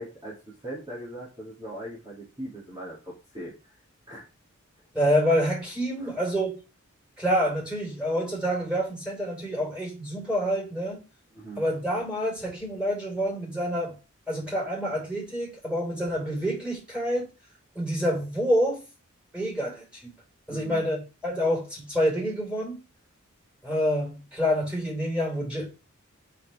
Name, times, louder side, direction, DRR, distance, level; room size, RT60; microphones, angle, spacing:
voice 1, 0.0-3.7 4.1-4.3 6.0-6.1 11.3-11.6 20.5-20.8, right 1 dB, 20° right, 3.4 m, -40 dB
voice 2, 4.9-6.5 7.2-11.0 11.6-14.0 14.3-17.3 17.7-18.8 19.3-20.1 20.5-22.8 23.6-25.7, equal, 5° right, 5.6 m, -27 dB
7.0 x 6.9 x 3.8 m
head